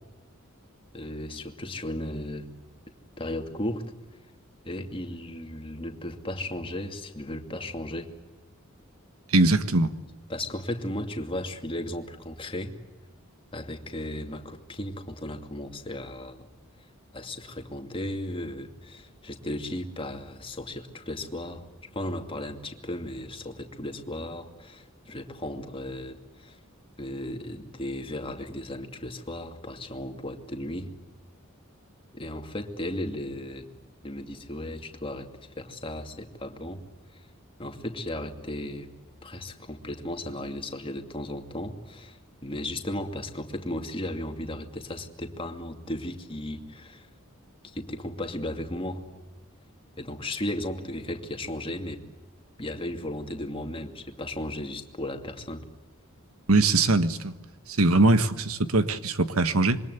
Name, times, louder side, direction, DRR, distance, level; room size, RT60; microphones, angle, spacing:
voice 1, 0.9-2.5 2.9-3.9 4.6-8.1 10.3-12.8 13.5-16.5 17.1-21.7 21.9-26.6 27.0-30.9 32.1-33.7 34.0-35.3 35.6-36.8 37.1-37.3 37.6-38.9 39.2-47.1 47.6-49.0 50.0-52.0 52.6-55.7, left 1 dB, 25° left, 2.5 m, -35 dB
voice 2, 9.3-9.9 56.5-57.3 57.7-59.8, right 2 dB, 90° right, 1.5 m, -21 dB
27.0 x 24.0 x 8.1 m
head